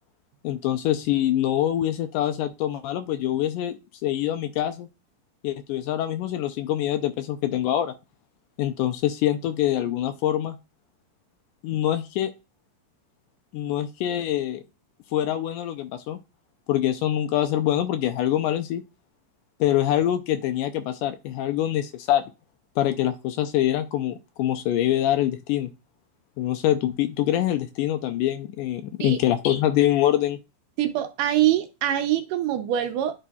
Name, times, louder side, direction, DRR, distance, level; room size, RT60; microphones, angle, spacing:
voice 1, 0.4-4.9 5.4-8.0 8.6-10.6 11.6-12.3 13.5-14.6 15.1-16.2 16.7-18.8 19.6-22.2 22.8-25.7 26.4-30.4, left 12 dB, 80° left, 9 dB, 2.0 m, -24 dB
voice 2, 30.8-33.1, right 12 dB, 75° right, 7 dB, 2.2 m, -24 dB
11.0 x 3.7 x 2.3 m, 0.27 s
omnidirectional pair, 4.0 m